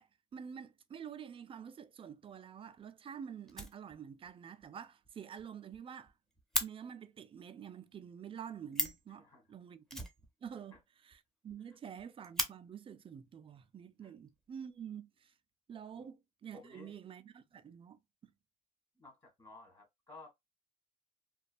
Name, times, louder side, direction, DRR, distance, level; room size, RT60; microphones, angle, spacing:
voice 1, 0.0-6.1 6.6-10.0 10.4-10.8 11.0-15.3 15.7-18.3, right 8 dB, 30° right, 0.4 m, -48 dB
Fire, 2.3-2.4 2.8-2.9 3.1-3.2 3.5-4.3 4.6-4.7 5.0-5.1 5.4-5.5 5.7-6.7 8.4-8.5 8.7-9.1 9.9-10.8 11.1-11.2 11.5-11.6 12.0-12.5 13.5-13.6 14.3-14.9, equal, ahead, 0.7 m, -38 dB
voice 2, 9.1-9.4 10.7-10.8 11.7-11.8 14.0-14.1 15.9-16.1 16.5-17.0 19.0-20.3, left 3 dB, 30° left, 1.5 m, -55 dB
3.0 x 2.2 x 2.4 m
cardioid pair, 110°, 17 cm